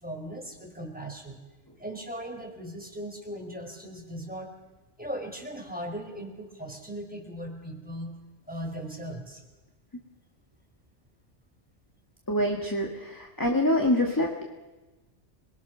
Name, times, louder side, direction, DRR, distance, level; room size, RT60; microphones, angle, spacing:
voice 1, 0.0-1.4 1.8-4.5 5.0-8.1 8.5-9.4, right 1 dB, 5° right, 1 dB, 4.7 m, -38 dB
voice 2, 12.3-14.4, left 1 dB, 15° left, 1 dB, 1.9 m, -25 dB
27.0 x 22.5 x 6.3 m, 1.1 s
omnidirectional pair, 1.2 m